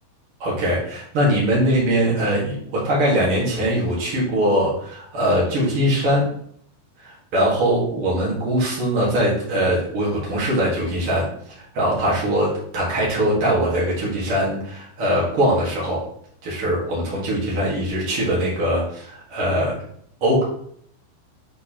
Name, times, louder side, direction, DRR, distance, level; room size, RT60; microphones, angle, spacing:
voice 1, 0.4-6.2 7.3-16.0 16.4-19.7 20.2-20.4, equal, 75° right, -6 dB, 1.2 m, -21 dB
7.6 x 4.3 x 2.9 m, 0.65 s
omnidirectional pair, 5.4 m